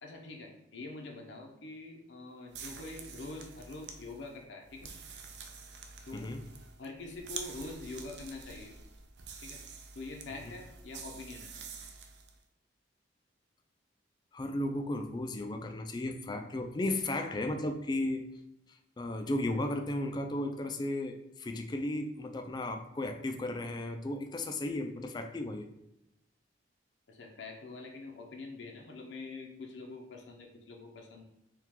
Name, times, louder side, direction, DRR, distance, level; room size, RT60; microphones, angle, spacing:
voice 1, 0.0-4.9 6.1-6.3 6.8-8.7 9.4-9.6 9.9-11.5 27.1-31.2, left 3 dB, 70° left, 2 dB, 0.7 m, -45 dB
sound 1, 2.5-12.4, right 5 dB, 65° right, 0.5 m, -47 dB
voice 2, 6.1-6.4 14.3-18.3 19.0-25.7, left 1 dB, 25° left, 6 dB, 0.3 m, -35 dB
4.6 x 2.3 x 3.6 m, 0.85 s
head